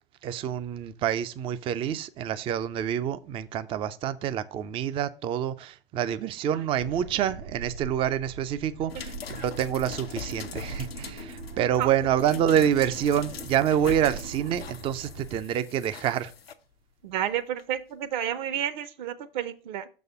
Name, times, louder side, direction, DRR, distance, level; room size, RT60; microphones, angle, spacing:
voice 1, 0.2-16.3, right 10 dB, 20° right, 0.4 m, -27 dB
sound 1, 6.8-15.4, right 5 dB, 70° right, 2.1 m, -42 dB
sound 2, 8.9-16.5 17.6-17.7, left 6 dB, 85° left, 0.7 m, -42 dB
voice 2, 17.0-19.9, right 10 dB, 50° right, 0.7 m, -31 dB
6.4 x 4.2 x 5.6 m
figure-of-eight pair, 95°, 29 cm